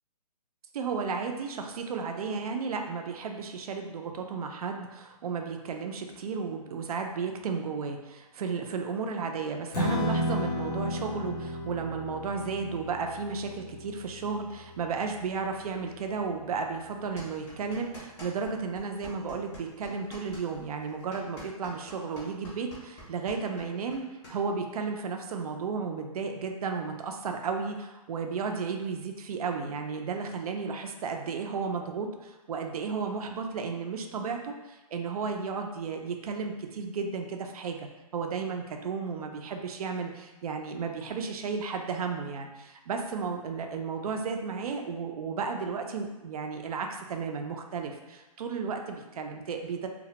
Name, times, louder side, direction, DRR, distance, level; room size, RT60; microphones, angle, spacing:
voice 1, 0.7-49.9, right 5 dB, 70° right, 4 dB, 0.4 m, -33 dB
Strum, 9.7-16.0, left 1 dB, 80° left, 0.7 m, -34 dB
sound 1, 17.2-18.5 18.8-24.4, equal, 15° left, 0.6 m, -46 dB
2.2 x 2.1 x 2.7 m, 1.1 s
hypercardioid pair, 155°, 20 cm